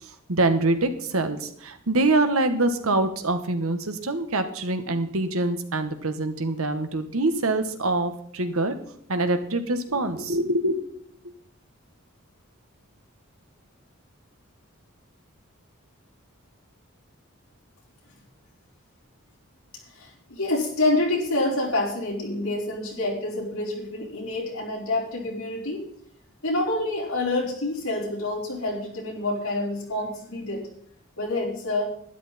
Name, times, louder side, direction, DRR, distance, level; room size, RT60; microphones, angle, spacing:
voice 1, 0.0-8.7 9.1-10.8, right 2 dB, 80° right, 8 dB, 1.4 m, -25 dB
voice 2, 19.9-25.8 26.4-30.6 31.2-31.9, left 2 dB, 80° left, -2 dB, 4.4 m, -27 dB
12.0 x 11.0 x 4.3 m, 0.65 s
head